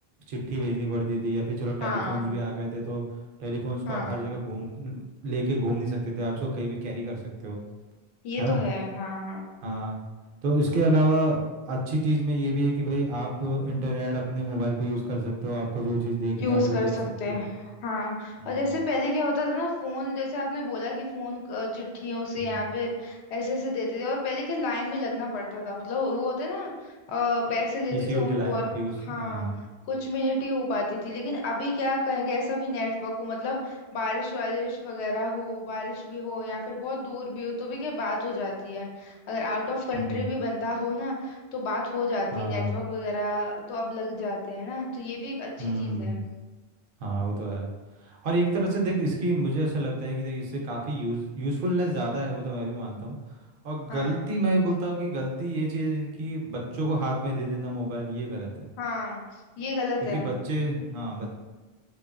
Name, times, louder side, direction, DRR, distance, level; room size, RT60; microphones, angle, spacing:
voice 1, 0.3-3.0 3.4-7.6 8.4-8.6 9.6-10.0 10.4-11.4 11.7-16.9 17.3-17.4 18.4-18.6 22.4-22.6 27.9-29.6 39.9-40.2 42.3-42.7 45.6-46.2 47.0-47.7 48.0-53.2 53.6-58.7 60.0-61.3, right 1 dB, 60° right, -1 dB, 0.7 m, -28 dB
voice 2, 1.8-2.3 3.9-4.2 8.2-9.5 16.4-28.7 28.9-29.5 29.9-46.2 53.9-54.2 58.8-59.2 59.6-60.3 60.8-60.9, left 2 dB, 90° left, 0 dB, 0.9 m, -30 dB
2.8 x 2.2 x 2.4 m, 1.2 s
omnidirectional pair, 1.1 m